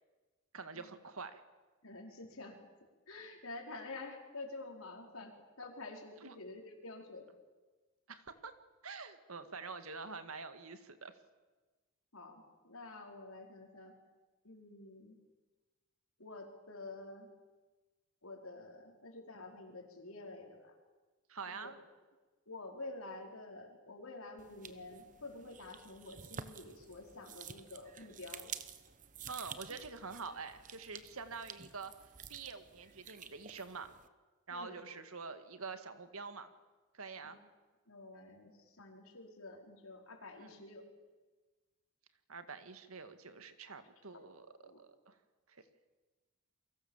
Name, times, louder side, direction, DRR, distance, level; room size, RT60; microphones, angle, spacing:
voice 1, 0.5-1.4 6.2-6.4 8.1-8.5 8.8-11.1 21.3-21.8 29.3-31.9 32.3-33.9 34.5-36.5 36.9-37.4 40.4-40.5 42.3-45.1, right 4 dB, 90° right, 9 dB, 2.0 m, -46 dB
voice 2, 1.8-2.6 3.1-7.3 12.1-14.0 14.4-15.2 16.2-17.3 18.2-20.7 21.5-21.7 22.5-28.5 34.5-34.8 37.2-37.3 37.9-40.9 44.1-44.2 44.5-44.8, left 2 dB, 85° left, 2 dB, 4.9 m, -49 dB
sound 1, 24.4-34.1, right 7 dB, 35° right, 1.0 m, -51 dB
29.0 x 23.5 x 7.4 m, 1.3 s
head